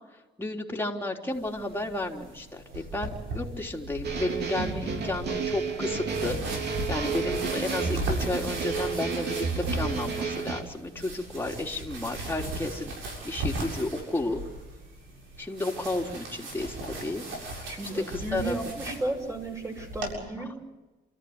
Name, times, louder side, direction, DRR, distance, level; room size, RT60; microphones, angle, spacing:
voice 1, 0.4-12.9 13.2-14.4 15.4-17.7 18.3-18.6, left 2 dB, 10° left, 0 dB, 3.6 m, -32 dB
sound 1, 1.3-20.1, right 2 dB, 85° right, 7.5 m, -38 dB
sound 2, 4.0-10.6, right 5 dB, 60° right, 3.4 m, -31 dB
voice 2, 17.6-20.7, right 2 dB, 15° right, 3 dB, 6.5 m, -34 dB
28.5 x 14.5 x 9.7 m, 1.2 s
cardioid pair, 90°, 20 cm